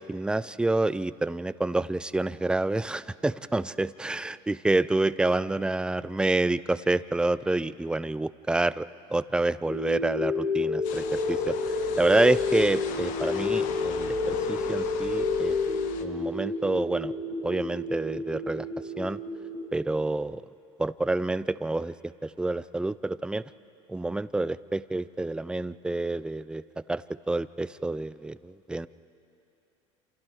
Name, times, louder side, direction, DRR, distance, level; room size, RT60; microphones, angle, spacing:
voice 1, 0.0-11.5 12.0-15.6 16.0-17.1 17.4-18.7 19.0-19.2 19.7-20.4 20.8-23.4 23.9-26.6 26.9-28.9, right 2 dB, 5° right, 16 dB, 0.4 m, -28 dB
sound 1, 9.7-19.7, left 3 dB, 85° left, 4.3 m, -29 dB
sound 2, 10.8-16.1, left 8 dB, 60° left, 1.2 m, -40 dB
28.0 x 27.5 x 3.5 m, 2.7 s
hypercardioid pair, 85°, 15 cm